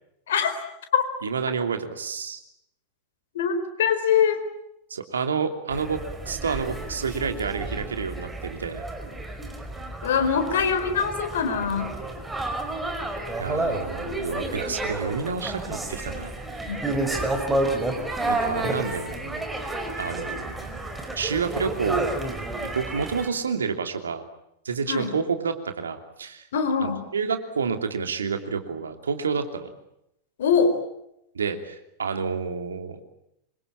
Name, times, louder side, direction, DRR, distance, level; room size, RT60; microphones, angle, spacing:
voice 1, 1.2-2.4 4.9-8.8 13.4-16.3 18.3-19.5 20.0-20.7 21.2-22.3 22.6-24.2 24.6-26.4 26.8-29.7 31.3-33.0, right 5 dB, 70° right, 7 dB, 2.9 m, -29 dB
voice 2, 3.3-4.4 10.0-12.0 16.7-17.0 24.9-25.1 26.5-27.1 30.4-30.8, left 6 dB, 60° left, 8 dB, 4.5 m, -23 dB
sound 1, 5.7-23.3, right 2 dB, 10° right, 4.8 m, -30 dB
27.0 x 24.0 x 8.7 m, 0.81 s
figure-of-eight pair, 90°, 0 cm